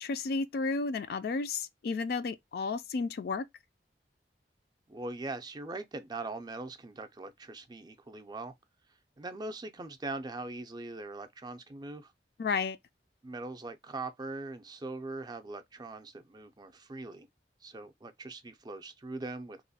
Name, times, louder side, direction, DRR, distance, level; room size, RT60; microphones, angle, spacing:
voice 1, 0.0-3.4 12.4-12.8, left 4 dB, 60° left, 0.3 m, -32 dB
voice 2, 4.9-8.5 9.2-12.1 13.2-17.3 17.6-19.6, right 2 dB, 25° right, 0.4 m, -41 dB
3.0 x 2.1 x 4.0 m
head